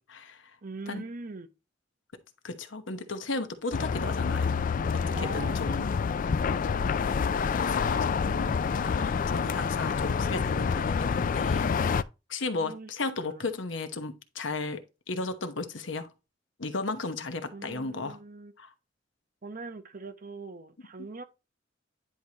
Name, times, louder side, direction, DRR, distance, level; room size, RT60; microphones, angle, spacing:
voice 1, 0.0-0.5 0.9-1.0 2.4-4.5 4.9-5.9 7.3-8.6 8.8-11.7 12.3-16.1 16.6-18.2 18.6-18.7, left 3 dB, 80° left, 1.0 m, -35 dB
voice 2, 0.6-1.5 5.1-5.6 6.7-6.9 12.5-12.9 13.3-13.5 17.5-18.5 19.4-21.2, right 3 dB, 45° right, 0.9 m, -41 dB
sound 1, 3.7-12.0, left 5 dB, 45° left, 0.3 m, -27 dB
10.0 x 4.7 x 2.9 m
head